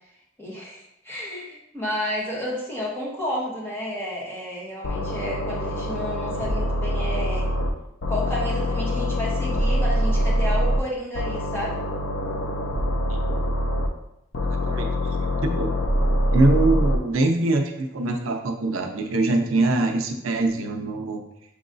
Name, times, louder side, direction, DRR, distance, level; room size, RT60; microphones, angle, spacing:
voice 1, 0.4-7.5 8.1-11.8, equal, 10° left, -5 dB, 1.1 m, -31 dB
sound 1, 4.8-7.7 8.0-10.8 11.1-13.9 14.3-17.0, equal, 75° left, 0.5 m, -24 dB
voice 2, 14.5-14.9 15.4-15.8 16.3-21.2, right 2 dB, 90° right, 3 dB, 0.6 m, -23 dB
6.2 x 3.0 x 2.6 m, 0.80 s
head